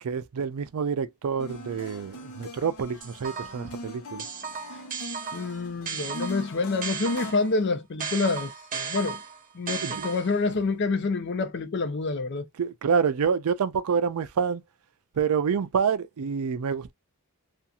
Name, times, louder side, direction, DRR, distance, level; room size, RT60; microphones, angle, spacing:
voice 1, 0.0-4.2 9.8-10.1 12.6-14.6 15.2-16.9, right 6 dB, 80° right, 0.4 m, -27 dB
sound 1, 1.4-7.3, left 1 dB, 80° left, 0.9 m, -41 dB
sound 2, 3.0-3.7 4.2-7.5 8.0-10.5, right 6 dB, 35° right, 0.6 m, -35 dB
voice 2, 5.3-9.2 9.5-12.5, left 3 dB, 50° left, 0.5 m, -27 dB
2.8 x 2.5 x 2.3 m
head